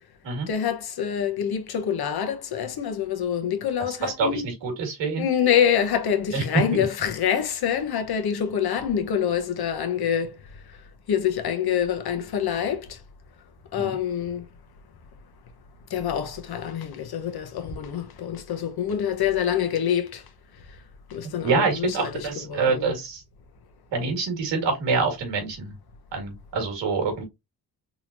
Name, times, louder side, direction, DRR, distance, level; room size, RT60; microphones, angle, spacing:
voice 1, 0.5-4.5 5.2-10.3 11.1-13.0 13.7-14.4 15.9-20.2 21.1-23.0, left 8 dB, 60° left, 1.0 m, -26 dB
voice 2, 4.0-5.3 6.3-6.4 6.7-6.9 13.8-14.0 21.4-23.2 23.9-25.7 26.1-27.2, right 4 dB, 80° right, 1.9 m, -26 dB
3.9 x 3.0 x 2.5 m
cardioid pair, 70°, 43 cm